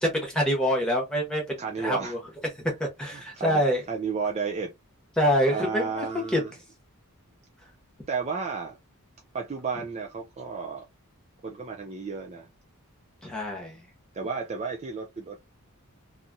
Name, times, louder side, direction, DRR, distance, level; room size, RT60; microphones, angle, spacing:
voice 1, 0.0-2.2 2.8-3.8 5.2-6.1 6.3-6.4 13.2-13.8, equal, 5° left, 1.0 m, -26 dB
voice 2, 1.6-2.2 3.1-4.7 5.5-6.5 8.1-8.8 9.3-10.9 11.4-12.5 14.1-15.5, right 5 dB, 30° right, 0.3 m, -32 dB
2.8 x 2.4 x 2.6 m
head